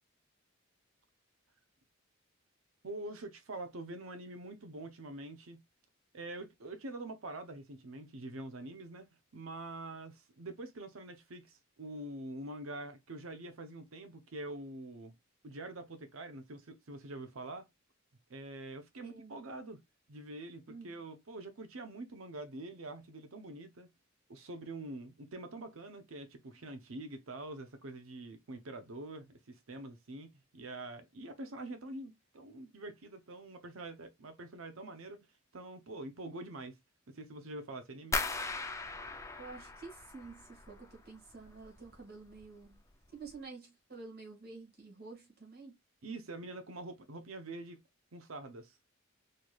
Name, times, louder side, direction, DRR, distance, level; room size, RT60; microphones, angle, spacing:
voice 1, 2.8-5.6 6.1-15.1 15.4-17.7 18.3-19.8 20.1-23.9 24.3-35.3 35.5-36.7 37.1-38.2 46.0-47.8 48.1-48.7, right 2 dB, 80° right, 0.7 m, -45 dB
voice 2, 19.0-19.4 20.7-21.0 39.4-42.8 43.1-45.8, right 4 dB, 50° right, 1.9 m, -50 dB
sound 1, 38.1-41.0 41.3-42.0 42.3-42.8 43.2-43.3, left 3 dB, 15° left, 0.4 m, -38 dB
4.4 x 3.1 x 2.3 m
head